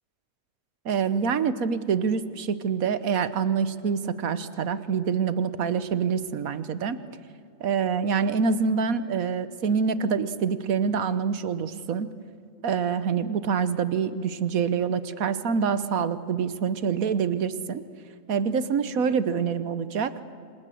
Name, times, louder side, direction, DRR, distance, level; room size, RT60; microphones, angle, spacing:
voice 1, 0.8-7.0 7.6-12.1 12.6-17.8 18.3-20.1, right 6 dB, 85° right, 13 dB, 1.4 m, -26 dB
28.0 x 26.5 x 7.7 m, 2.2 s
omnidirectional pair, 1.4 m